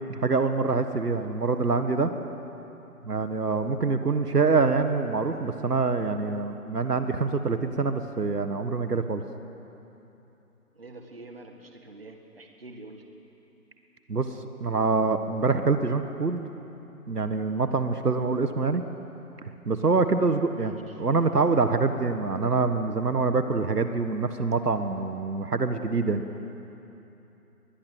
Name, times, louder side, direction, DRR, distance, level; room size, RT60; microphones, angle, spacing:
voice 1, 0.1-2.1 3.0-9.2 14.1-14.3 14.6-16.4 17.1-18.8 19.6-26.2, right 4 dB, 75° right, 8 dB, 1.7 m, -25 dB
voice 2, 10.7-13.0 20.5-20.9, right 2 dB, 35° right, 4 dB, 1.8 m, -46 dB
23.0 x 21.0 x 7.9 m, 3.0 s
figure-of-eight pair, 175°, 47 cm